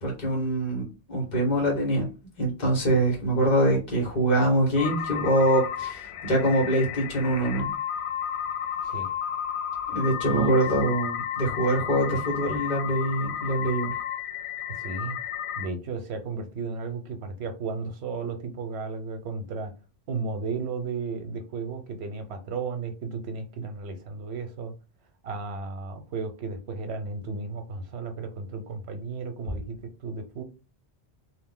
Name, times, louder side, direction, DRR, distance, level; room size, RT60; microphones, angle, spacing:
voice 1, 0.0-2.1 2.4-7.7 9.9-13.9, right 1 dB, 45° left, -1 dB, 1.1 m, -24 dB
sound 1, 4.8-15.7, left 9 dB, 85° left, 0.8 m, -32 dB
voice 2, 14.8-15.2 15.6-19.7 20.1-24.7 25.2-30.4, right 4 dB, 90° right, 7 dB, 0.9 m, -34 dB
2.4 x 2.1 x 3.7 m, 0.30 s
omnidirectional pair, 1.1 m